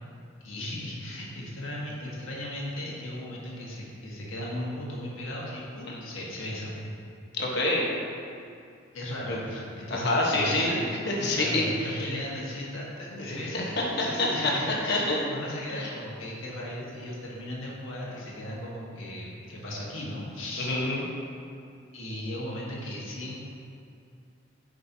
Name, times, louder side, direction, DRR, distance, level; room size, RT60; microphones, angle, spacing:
voice 1, 0.4-6.8 8.9-10.8 11.2-13.7 14.0-20.7 21.9-23.4, left 1 dB, 80° left, -4 dB, 1.5 m, -36 dB
voice 2, 7.3-7.9 9.3-9.4 9.9-12.1 13.1-13.7 14.2-15.2 15.7-15.9 20.6-21.0, left 2 dB, 55° left, -3 dB, 1.2 m, -27 dB
9.9 x 5.3 x 2.8 m, 2.5 s
head